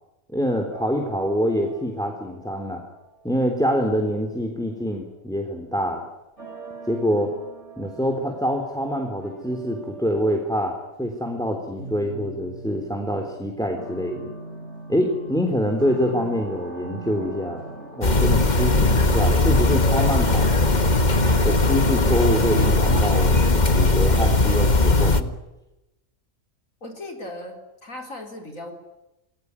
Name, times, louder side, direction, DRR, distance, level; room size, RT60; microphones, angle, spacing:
voice 1, 0.3-2.8 3.2-6.0 6.9-7.3 7.8-14.3 14.9-17.6 17.9-20.5 21.4-25.3, equal, ahead, 4 dB, 3.5 m, -25 dB
sound 1, 0.7-4.5 6.4-18.3, right 2 dB, 50° right, 5.0 m, -42 dB
sound 2, 18.0-25.2, left 2 dB, 30° left, 1.6 m, -19 dB
voice 2, 26.8-28.7, left 1 dB, 60° left, 3 dB, 4.5 m, -37 dB
29.0 x 21.0 x 9.8 m, 0.98 s
omnidirectional pair, 1.5 m